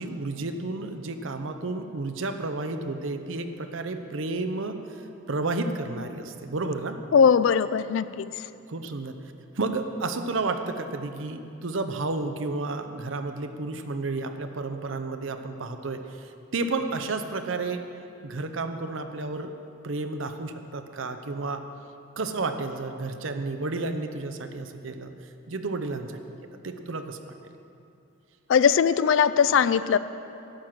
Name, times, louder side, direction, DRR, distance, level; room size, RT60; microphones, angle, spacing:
voice 1, 0.0-4.8 5.3-7.0 8.7-9.1 9.6-17.9 18.2-19.5 19.8-21.6 22.2-25.1 25.5-26.2 26.6-27.3, right 3 dB, 65° right, 7 dB, 0.7 m, -31 dB
voice 2, 7.1-8.3 28.5-30.0, left 7 dB, 65° left, 15 dB, 0.3 m, -20 dB
11.5 x 7.8 x 5.9 m, 2.7 s
head